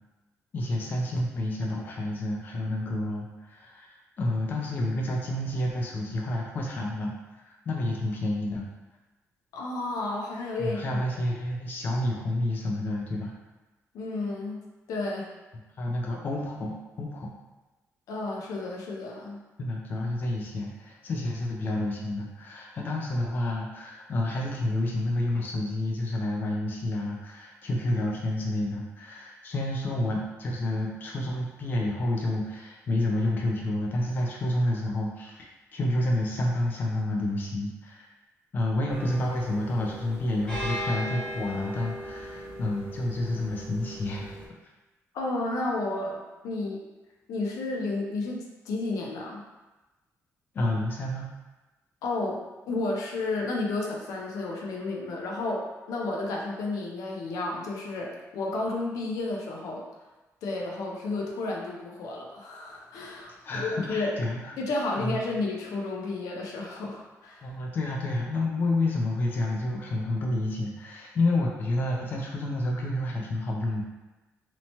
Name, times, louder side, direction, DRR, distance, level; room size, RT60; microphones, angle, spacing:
voice 1, 0.5-7.1 7.4-8.7 10.6-13.3 15.8-17.3 19.6-38.1 38.5-44.3 50.5-51.3 63.4-64.5 65.0-65.2 67.4-73.8, left 1 dB, 35° left, -1 dB, 0.3 m, -29 dB
voice 2, 9.5-10.8 13.9-15.3 18.1-19.4 45.1-46.8 47.3-49.4 52.0-59.9 60.4-64.2 64.6-67.5, left 2 dB, 90° left, -1 dB, 0.5 m, -32 dB
sound 1, 38.9-44.5, equal, 15° left, 0.9 m, -38 dB
2.8 x 2.1 x 2.8 m, 1.1 s
cardioid pair, 175°, 6 cm